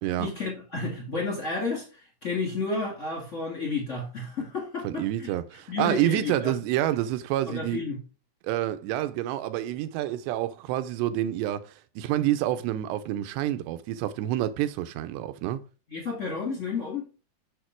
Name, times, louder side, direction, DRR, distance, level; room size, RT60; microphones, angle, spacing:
voice 1, 0.2-5.3 5.7-6.6 7.5-8.0 15.9-17.1, left 4 dB, 35° left, 1.1 m, -31 dB
voice 2, 4.8-7.8 8.4-15.6, right 13 dB, 80° right, 2.8 m, -28 dB
7.3 x 6.5 x 4.5 m
omnidirectional pair, 5.1 m